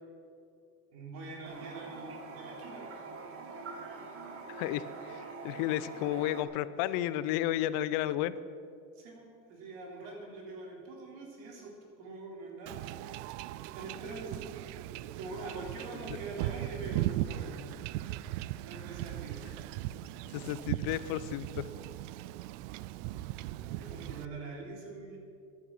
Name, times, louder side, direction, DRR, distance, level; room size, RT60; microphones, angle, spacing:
voice 1, 0.9-3.0 6.8-6.9 9.0-13.1 13.7-14.7 15.1-17.8 18.6-19.4 23.6-25.2, right 3 dB, 70° right, 0 dB, 3.7 m, -44 dB
Toilet flush, 1.4-6.4, right 4 dB, 40° right, 1.8 m, -44 dB
voice 2, 4.5-8.3 20.3-21.7, left 13 dB, 65° left, 16 dB, 0.7 m, -32 dB
Wind / Ocean / Boat Water vehicle, 12.7-24.3, right 15 dB, 85° right, 0.5 m, -38 dB
14.0 x 11.0 x 6.0 m, 2.5 s
cardioid pair, 150°, 36 cm